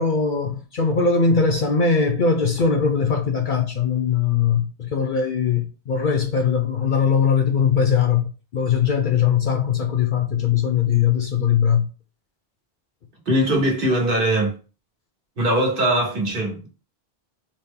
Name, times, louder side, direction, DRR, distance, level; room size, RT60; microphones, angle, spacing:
voice 1, 0.0-11.9, left 6 dB, 55° left, 0.6 m, -20 dB
voice 2, 13.3-14.6 15.4-16.7, right 1 dB, 55° right, 1.2 m, -21 dB
4.2 x 2.0 x 3.5 m
omnidirectional pair, 1.1 m